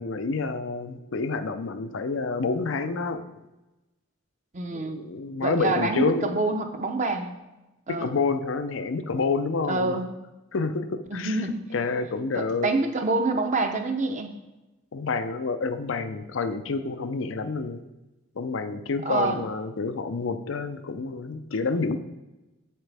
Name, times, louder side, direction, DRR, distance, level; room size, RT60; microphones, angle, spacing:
voice 1, 0.0-3.2 4.7-6.4 7.9-9.9 10.5-11.4 11.7-12.7 14.9-17.8 18.4-22.0, left 4 dB, 80° left, 9 dB, 0.6 m, -28 dB
voice 2, 4.5-5.0 5.4-7.3 7.9-8.1 9.7-10.0 11.1-11.6 12.3-14.3 19.0-19.4, right 3 dB, 40° right, 6 dB, 0.7 m, -26 dB
8.2 x 7.5 x 3.4 m, 1.0 s
head